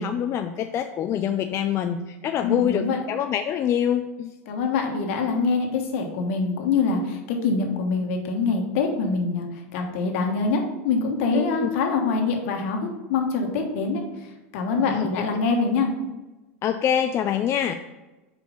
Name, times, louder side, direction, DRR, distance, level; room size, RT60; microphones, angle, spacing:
voice 1, 0.0-4.3 11.3-11.7 14.9-15.1 16.6-17.7, left 9 dB, 35° left, 7 dB, 0.4 m, -25 dB
voice 2, 2.4-3.0 4.5-14.0 14.5-15.9, left 4 dB, 65° left, 3 dB, 1.3 m, -24 dB
5.1 x 4.9 x 5.1 m, 1.1 s
hypercardioid pair, 100°, 8 cm